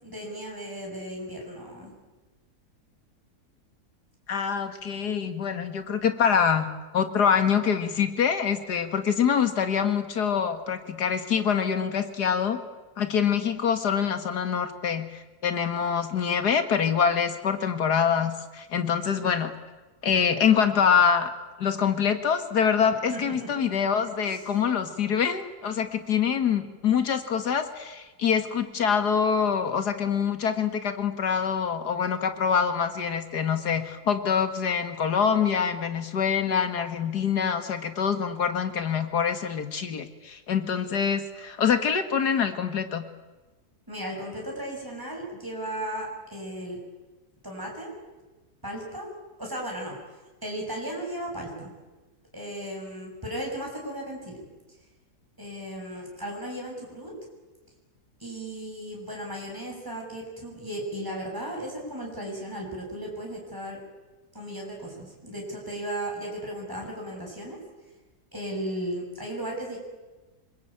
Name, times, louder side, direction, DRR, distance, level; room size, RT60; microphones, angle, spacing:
voice 1, 0.0-1.9 23.1-23.7 24.2-24.4 43.9-46.8 47.4-47.9 48.6-49.1 49.4-50.0 50.4-51.7 52.3-54.4 55.4-57.1 58.2-63.8 64.3-67.6 68.3-69.8, right 1 dB, 10° right, -1 dB, 7.3 m, -35 dB
voice 2, 4.3-6.7 6.9-12.6 13.0-19.5 20.0-21.3 21.6-43.0, left 7 dB, 85° left, 9 dB, 2.4 m, -25 dB
26.0 x 21.5 x 8.9 m, 1.2 s
omnidirectional pair, 1.7 m